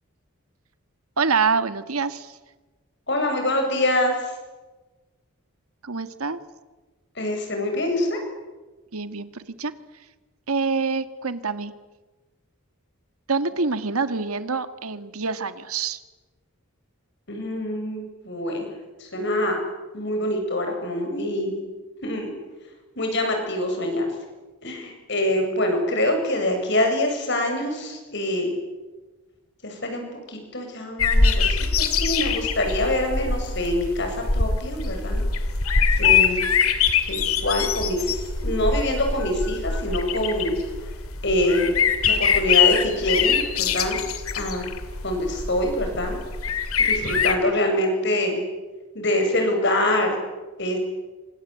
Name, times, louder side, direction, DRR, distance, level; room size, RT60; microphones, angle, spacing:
voice 1, 1.2-2.3 5.8-6.4 8.9-9.7 10.5-11.7 13.3-16.0, right 4 dB, 90° right, 11 dB, 1.8 m, -26 dB
voice 2, 3.1-4.3 7.2-8.2 17.3-18.7 19.0-19.6 19.9-21.6 22.0-22.3 23.0-24.1 24.6-28.5 29.6-35.2 36.0-36.5 37.1-40.5 41.2-41.8 42.1-44.0 44.3-44.7 45.0-46.2 46.8-48.4 48.9-50.2 50.6-50.8, left 1 dB, 55° left, 4 dB, 7.7 m, -25 dB
sound 1, 31.0-47.4, left 6 dB, 85° left, 2.6 m, -23 dB
28.0 x 25.5 x 8.5 m, 1.2 s
head